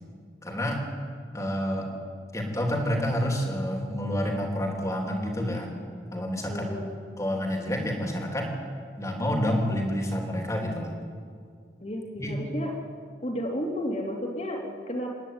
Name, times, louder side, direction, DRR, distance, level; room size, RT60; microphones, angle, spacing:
voice 1, 0.4-0.8 1.3-1.9 2.3-5.8 6.1-6.7 7.2-8.5 9.0-11.0 12.2-12.4, equal, 20° left, 1 dB, 3.3 m, -28 dB
voice 2, 6.5-6.9 11.8-12.7 13.2-15.1, equal, 40° left, 1 dB, 3.3 m, -32 dB
27.0 x 11.0 x 9.7 m, 2.2 s
head